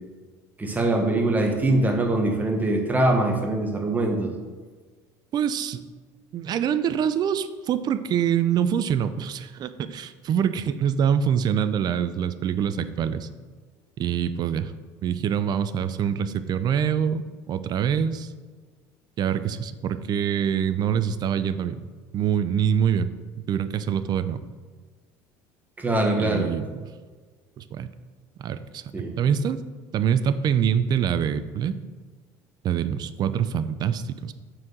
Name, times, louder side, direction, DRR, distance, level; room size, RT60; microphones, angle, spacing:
voice 1, 0.6-4.3 25.8-26.5 28.9-29.1, right 2 dB, 15° right, 2 dB, 1.5 m, -23 dB
voice 2, 5.3-5.8 6.3-13.3 14.0-14.7 15.0-18.3 19.2-21.9 22.1-23.1 23.5-24.4 26.2-26.8 27.6-27.9 28.4-28.8 29.2-29.6 29.9-31.8 32.6-34.3, right 8 dB, 45° right, 12 dB, 0.5 m, -25 dB
6.1 x 4.6 x 6.3 m, 1.4 s
supercardioid pair, 95°, 10 cm